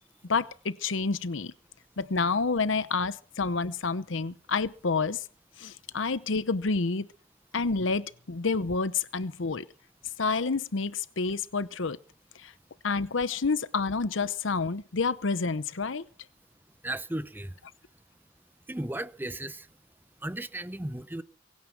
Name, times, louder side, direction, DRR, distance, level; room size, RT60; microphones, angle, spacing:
voice 1, 0.3-1.5 2.0-5.2 5.6-7.1 7.5-9.6 10.2-12.0 12.4-12.5 12.8-16.1, left 4 dB, 70° left, 0.8 m, -29 dB
voice 2, 16.8-17.6 18.7-19.7 20.2-21.2, right 1 dB, 10° right, 0.7 m, -35 dB
23.0 x 9.4 x 6.0 m
head